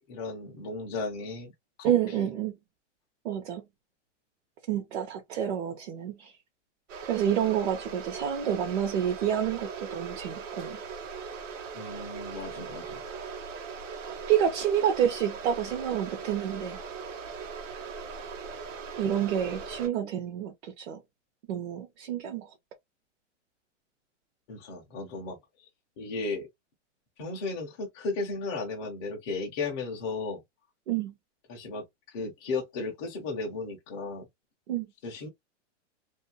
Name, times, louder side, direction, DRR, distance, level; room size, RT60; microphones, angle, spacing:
voice 1, 0.1-1.5 1.8-2.3 11.7-13.0 24.5-25.4 26.0-26.5 27.2-30.4 31.5-34.3 35.0-35.3, left 3 dB, 20° left, 0.5 m, -35 dB
voice 2, 1.8-2.5 3.2-3.6 4.7-6.3 7.0-10.8 14.1-16.8 19.0-21.0 21.5-22.5 30.9-31.1 34.7-34.9, right 9 dB, 60° right, 0.8 m, -29 dB
sound 1, 6.9-19.9, right 5 dB, 85° right, 1.0 m, -40 dB
2.5 x 2.3 x 2.7 m
hypercardioid pair, 165°, 36 cm